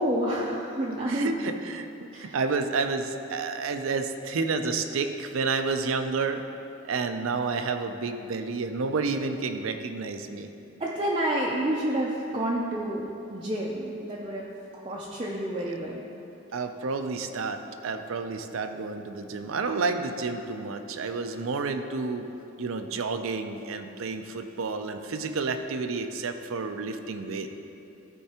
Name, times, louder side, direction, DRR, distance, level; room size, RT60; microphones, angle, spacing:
voice 1, 0.0-1.3 2.1-2.4 10.8-14.5 14.7-16.0, right 1 dB, 25° right, -4 dB, 0.5 m, -29 dB
voice 2, 1.1-6.4 6.9-10.5 15.6-15.7 16.5-22.3 22.6-27.5, right 4 dB, 80° right, 7 dB, 0.5 m, -30 dB
13.5 x 4.5 x 2.9 m, 2.9 s
head